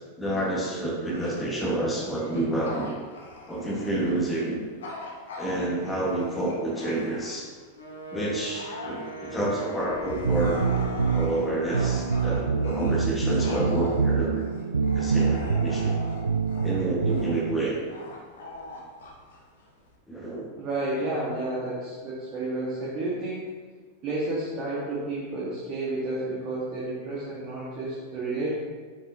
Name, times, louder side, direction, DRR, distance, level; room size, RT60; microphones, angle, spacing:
voice 1, 0.2-2.9 3.5-4.6 5.4-7.5 8.1-10.7 11.1-14.4 14.9-16.0 16.6-17.8 20.1-20.5, right 1 dB, 10° left, -4 dB, 1.6 m, -29 dB
Bark / Growling, 1.1-7.6 8.1-20.0, left 2 dB, 60° left, 1.3 m, -41 dB
Wind instrument woodwind instrument, 7.7-11.8, left 1 dB, 75° left, 1.7 m, -40 dB
sound 1, 10.2-17.7, right 5 dB, 75° right, 0.3 m, -26 dB
voice 2, 20.5-23.4 24.0-28.5, right 2 dB, 35° right, -7 dB, 1.7 m, -31 dB
7.9 x 6.2 x 2.9 m, 1.5 s
figure-of-eight pair, 90°, 0 cm